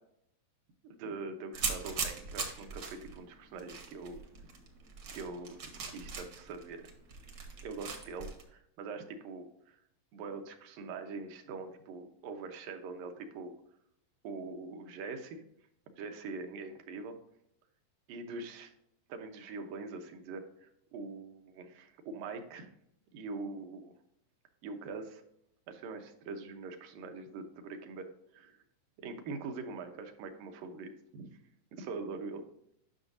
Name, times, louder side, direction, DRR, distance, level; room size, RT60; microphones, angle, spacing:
voice 1, 0.8-4.3 5.1-6.9 7.6-9.8 10.1-13.6 14.2-15.4 16.0-17.2 18.1-18.7 19.1-22.7 23.1-23.9 24.6-25.2 25.7-28.1 28.3-28.6 29.0-31.4 31.7-32.4, right 4 dB, 80° right, 5 dB, 2.6 m, -43 dB
sound 1, 1.5-8.4, right 4 dB, 60° right, 1.1 m, -40 dB
9.5 x 6.2 x 2.6 m, 0.74 s
omnidirectional pair, 3.9 m